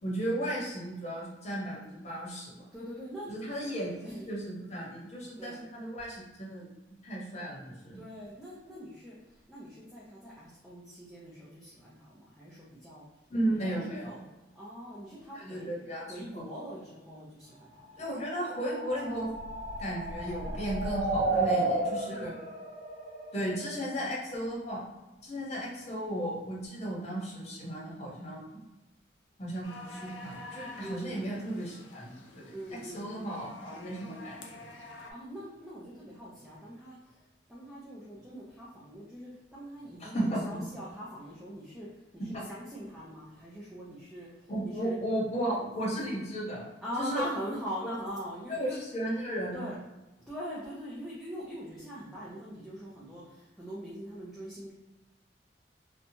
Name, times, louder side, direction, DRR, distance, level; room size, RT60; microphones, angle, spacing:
voice 1, 0.0-2.6 3.3-6.6 7.0-8.0 13.3-14.2 15.3-16.0 16.3-16.4 18.0-19.3 19.8-22.3 23.3-24.8 25.2-28.6 29.4-32.5 32.7-34.6 40.0-40.4 42.2-42.5 44.5-46.6 47.0-47.2 48.5-49.7, right 1 dB, 40° left, -5 dB, 0.9 m, -35 dB
voice 2, 2.7-3.5 4.0-4.3 5.4-5.6 7.9-9.2 9.5-13.0 13.6-14.2 14.6-15.7 16.1-17.9 21.2-21.8 22.1-22.4 30.8-31.3 32.5-33.3 34.9-37.0 37.5-41.9 42.2-44.3 44.8-44.9 46.8-48.8 49.5-49.8 50.3-54.7, equal, ahead, -8 dB, 0.5 m, -42 dB
sound 1, 18.1-23.9, right 2 dB, 50° right, 1.3 m, -33 dB
sound 2, 29.6-35.1, left 2 dB, 85° left, 0.5 m, -48 dB
2.8 x 2.2 x 2.7 m, 1.0 s
head